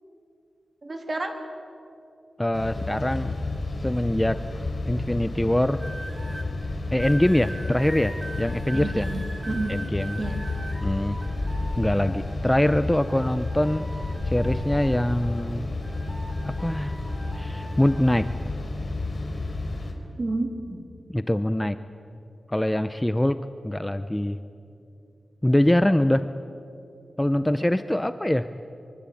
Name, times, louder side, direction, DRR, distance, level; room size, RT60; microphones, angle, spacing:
voice 1, 0.8-1.3 8.7-9.7 10.2-10.4 20.2-20.8, right 2 dB, 35° right, 5 dB, 3.0 m, -30 dB
voice 2, 2.4-3.4 3.8-4.4 4.9-5.8 6.9-9.1 9.7-10.2 10.8-11.2 11.8-13.9 14.3-15.7 16.6-16.9 17.4-18.3 21.1-21.8 22.5-24.4 25.4-26.3 27.2-28.5, left 1 dB, 10° left, 11 dB, 0.6 m, -23 dB
sound 1, 2.5-19.9, left 2 dB, 35° left, 3.6 m, -31 dB
sound 2, 5.8-6.5 7.0-12.5 12.9-15.5 15.8-18.4 19.1-19.4, right 1 dB, 15° right, 3.0 m, -41 dB
24.5 x 24.0 x 8.6 m, 2.6 s
wide cardioid pair, 120°, 0 cm